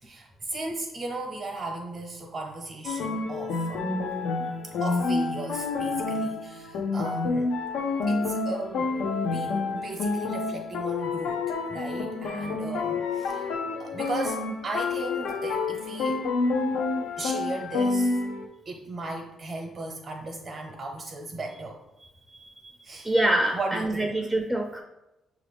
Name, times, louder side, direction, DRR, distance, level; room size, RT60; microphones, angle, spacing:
voice 1, 0.0-3.8 4.8-7.6 8.1-9.0 9.2-13.5 13.8-16.2 17.2-18.2 18.6-21.8 22.8-23.1 23.5-24.1, right 2 dB, 45° right, 0 dB, 0.7 m, -36 dB
sound 1, 2.8-18.5, left 3 dB, 85° left, 0.4 m, -28 dB
voice 2, 22.3-24.8, right 1 dB, 5° right, 1 dB, 0.5 m, -26 dB
5.9 x 2.4 x 3.4 m, 0.98 s
cardioid pair, 90°, 0 cm